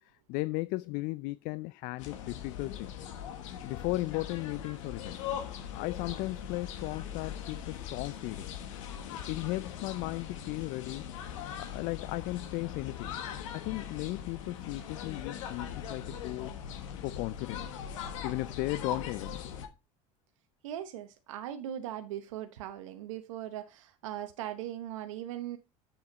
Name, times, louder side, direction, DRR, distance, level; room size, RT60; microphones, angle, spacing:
voice 1, 0.0-3.0 3.6-5.3 5.7-8.5 9.3-13.1 13.5-16.8 17.0-17.7 18.2-19.6, left 21 dB, 65° left, 0.4 m, -36 dB
sound 1, 2.0-19.7, left 8 dB, 85° left, 1.4 m, -40 dB
voice 2, 20.6-25.6, right 11 dB, 90° right, 0.9 m, -39 dB
8.7 x 7.0 x 4.0 m
supercardioid pair, 85°, 16 cm